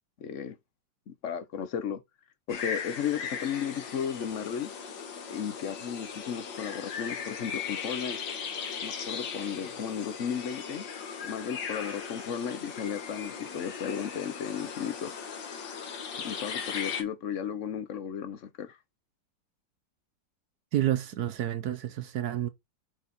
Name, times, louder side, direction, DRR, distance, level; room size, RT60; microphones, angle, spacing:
voice 1, 0.2-0.6 1.1-2.0 2.5-4.7 5.3-8.2 8.8-10.8 11.2-15.1 16.2-18.8, left 8 dB, 60° left, 0.9 m, -34 dB
sound 1, 2.5-17.0, left 6 dB, 75° left, 1.9 m, -38 dB
voice 2, 20.7-22.5, right 12 dB, 70° right, 1.0 m, -29 dB
6.1 x 3.9 x 4.2 m
omnidirectional pair, 2.0 m